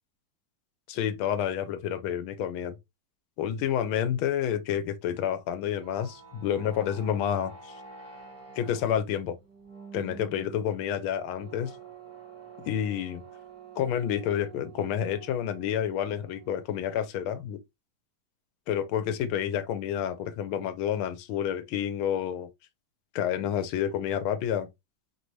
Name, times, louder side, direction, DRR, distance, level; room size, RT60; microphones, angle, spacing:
voice 1, 0.9-2.7 3.4-7.7 8.6-9.4 9.9-11.7 12.6-13.2 13.8-17.6 18.7-22.5 23.1-24.7, left 9 dB, 80° left, 1.5 m, -29 dB
sound 1, 5.6-16.8, right 5 dB, 10° right, 0.9 m, -48 dB
5.0 x 2.7 x 3.1 m
omnidirectional pair, 2.3 m